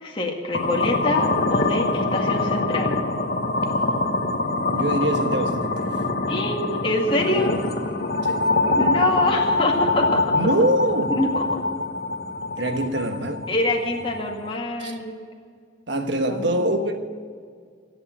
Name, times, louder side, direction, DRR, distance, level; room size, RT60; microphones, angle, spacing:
voice 1, 0.0-3.0 6.3-7.6 8.7-10.4 11.1-11.6 13.5-15.2 16.3-17.0, left 2 dB, 25° left, 0 dB, 1.9 m, -25 dB
sound 1, 0.5-14.5, left 2 dB, 50° left, 1.3 m, -24 dB
voice 2, 4.6-5.9 8.2-8.4 10.3-11.1 12.6-13.4 14.8-14.9 15.9-17.0, right 1 dB, 65° right, 6 dB, 1.4 m, -24 dB
16.5 x 8.1 x 8.9 m, 2.1 s
head